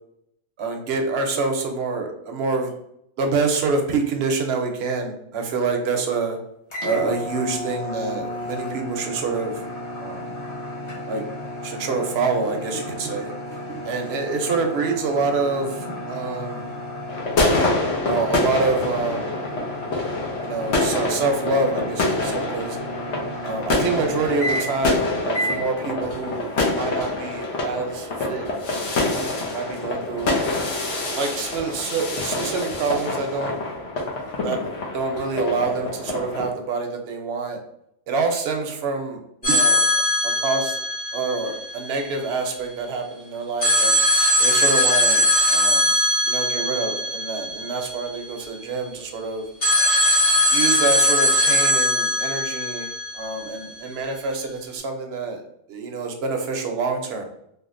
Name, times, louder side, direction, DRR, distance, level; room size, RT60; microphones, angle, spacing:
voice 1, 0.6-2.7 3.2-6.4 6.8-9.6 10.0-10.2 11.1-11.2 11.6-13.3 13.7-16.7 18.1-19.3 20.4-22.8 23.4-28.5 28.9-30.3 30.9-33.6 34.4-37.6 38.1-40.8 41.1-43.9 44.4-45.9 46.3-49.4 50.5-55.4 55.7-57.2, right 4 dB, 65° right, 4 dB, 0.8 m, -26 dB
sound 1, 6.7-24.9 25.3-25.7, equal, 30° left, 0.6 m, -33 dB
sound 2, 17.1-36.5, left 2 dB, 80° left, 1.0 m, -26 dB
sound 3, 39.4-42.3 43.6-48.5 49.6-53.8, equal, 55° left, 1.5 m, -20 dB
3.3 x 2.4 x 2.4 m, 0.75 s
omnidirectional pair, 1.2 m